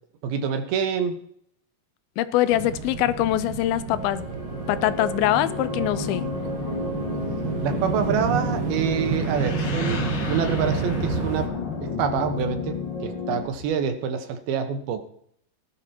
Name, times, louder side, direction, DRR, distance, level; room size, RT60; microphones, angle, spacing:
voice 1, 0.2-1.2 7.6-11.5 11.8-12.8 13.0-15.0, right 7 dB, 90° right, 3.2 m, -26 dB
voice 2, 2.2-4.3 4.7-6.3, left 14 dB, 90° left, 2.6 m, -23 dB
sound 1, 2.5-11.5, right 7 dB, 70° right, 2.5 m, -30 dB
sound 2, 3.9-13.4, left 3 dB, 20° left, 1.7 m, -32 dB
sound 3, 9.1-13.9, left 4 dB, 60° left, 3.3 m, -35 dB
17.0 x 11.5 x 2.9 m
omnidirectional pair, 4.2 m